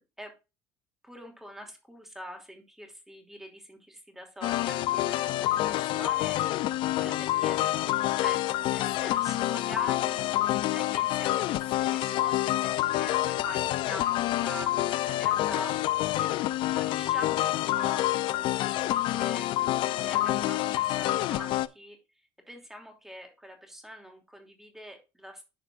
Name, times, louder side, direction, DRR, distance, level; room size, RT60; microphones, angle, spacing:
voice 1, 1.0-7.6 8.2-8.4 8.7-10.4 10.7-15.8 16.2-16.3 16.6-19.5 20.0-22.0 22.5-25.4, equal, 5° right, 3 dB, 2.8 m, -44 dB
sound 1, 4.4-21.7, left 15 dB, 60° left, 0.5 m, -27 dB
12.5 x 4.9 x 2.5 m, 0.29 s
supercardioid pair, 90°, 9 cm